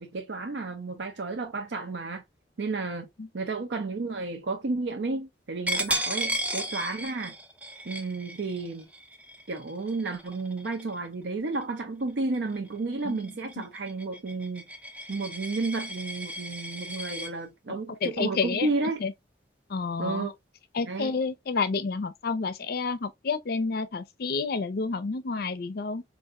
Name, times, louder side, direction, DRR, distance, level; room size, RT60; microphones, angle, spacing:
voice 1, 0.0-2.2 2.6-3.1 3.3-7.3 7.8-8.9 9.5-14.7 15.1-19.0 20.0-20.3 20.9-21.1, right 3 dB, 65° right, 0.6 m, -32 dB
Coin (dropping), 5.7-11.1 11.5-11.8 12.2-17.3, right 1 dB, 10° right, 0.4 m, -35 dB
voice 2, 17.7-18.7 19.0-19.1 19.7-20.3 20.7-26.0, left 4 dB, 55° left, 0.5 m, -30 dB
4.6 x 2.5 x 2.4 m
head